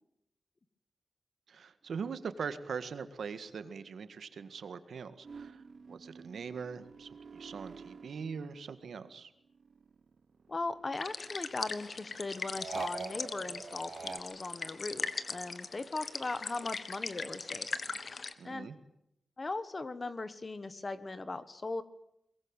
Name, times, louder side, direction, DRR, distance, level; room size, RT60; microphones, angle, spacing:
voice 1, 1.5-9.3 18.4-18.8, right 6 dB, 85° right, 11 dB, 1.8 m, -42 dB
sound 1, 5.2-9.1 9.5-11.0 12.6-14.2, right 5 dB, 50° right, 1.1 m, -46 dB
voice 2, 10.5-18.0 18.4-18.7 19.4-21.8, left 3 dB, 30° left, 13 dB, 1.4 m, -39 dB
sound 2, 10.9-18.3, left 4 dB, 45° left, 1.5 m, -40 dB
22.5 x 22.0 x 9.0 m, 0.79 s
wide cardioid pair, 160°, 0 cm